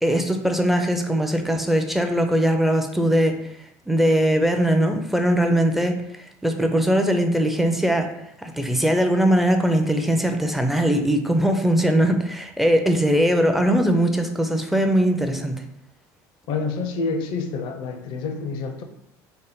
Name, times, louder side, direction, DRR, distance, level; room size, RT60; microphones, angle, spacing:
voice 1, 0.0-3.4 3.9-5.9 6.4-8.1 8.4-15.6, equal, ahead, 5 dB, 0.4 m, -20 dB
voice 2, 16.5-18.8, left 4 dB, 65° left, 6 dB, 0.5 m, -28 dB
3.9 x 2.1 x 3.6 m, 0.77 s
supercardioid pair, 105°, 9 cm